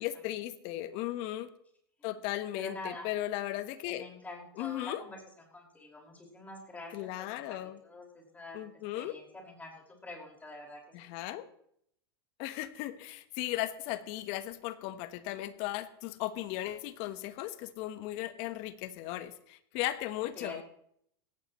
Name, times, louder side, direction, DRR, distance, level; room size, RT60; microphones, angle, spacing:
voice 1, 0.0-1.5 2.0-4.1 4.6-5.0 6.9-7.8 8.5-9.2 10.9-11.5 12.4-20.6, left 14 dB, 50° left, 13 dB, 1.2 m, -36 dB
voice 2, 0.6-1.1 2.0-2.1 2.5-3.1 3.8-5.2 5.5-10.8 20.3-20.6, left 2 dB, 10° left, 0 dB, 5.3 m, -47 dB
18.0 x 14.5 x 3.1 m, 0.68 s
hypercardioid pair, 105°, 13 cm